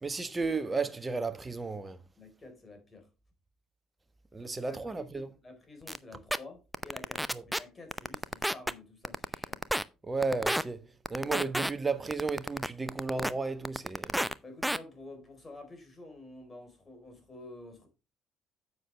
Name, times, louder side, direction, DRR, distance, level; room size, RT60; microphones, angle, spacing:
voice 1, 0.0-2.0 4.3-5.3 7.3-7.4 10.0-10.8 11.1-14.1, right 4 dB, 20° right, 1.3 m, -33 dB
voice 2, 2.2-3.1 4.4-9.6 14.4-17.9, left 2 dB, 25° left, 4.2 m, -50 dB
sound 1, 5.9-6.0 6.3-6.4 6.7-7.6 7.9-8.7 9.0-9.8 10.2-10.6 11.1-11.7 12.1-13.3 13.6-14.3 14.6-14.8, equal, 5° right, 0.6 m, -30 dB
9.7 x 7.0 x 3.3 m
figure-of-eight pair, 50°, 0 cm